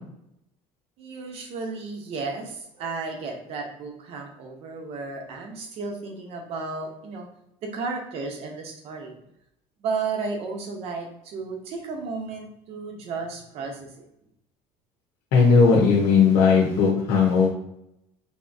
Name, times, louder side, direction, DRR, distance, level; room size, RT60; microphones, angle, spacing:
voice 1, 1.0-7.3 7.6-9.1 9.8-14.0, right 4 dB, 55° right, 2 dB, 0.7 m, -33 dB
voice 2, 15.3-17.5, left 5 dB, 85° left, -3 dB, 0.9 m, -17 dB
3.5 x 2.7 x 2.6 m, 0.79 s
cardioid pair, 160°, 12 cm